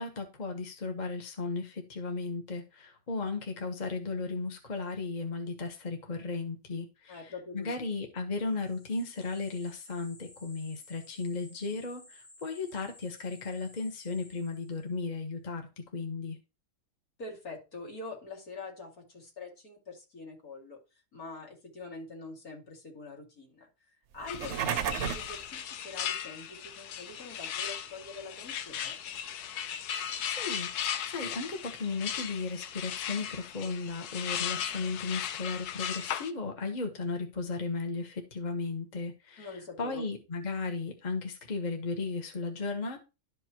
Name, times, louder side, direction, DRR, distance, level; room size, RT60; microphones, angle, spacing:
voice 1, 0.0-16.4 30.3-30.7 31.0-43.0, left 4 dB, 30° left, 4 dB, 1.2 m, -35 dB
voice 2, 7.1-7.9 17.2-20.8 21.1-23.7 24.1-29.0 39.4-40.0, left 3 dB, 70° left, 0 dB, 2.8 m, -44 dB
sound 1, 8.5-15.0, left 2 dB, 50° left, 2.3 m, -56 dB
sound 2, 24.2-25.4, right 9 dB, 65° right, 0.8 m, -32 dB
sound 3, 24.3-36.3, left 9 dB, 85° left, 1.2 m, -37 dB
12.0 x 5.4 x 3.0 m, 0.27 s
omnidirectional pair, 1.6 m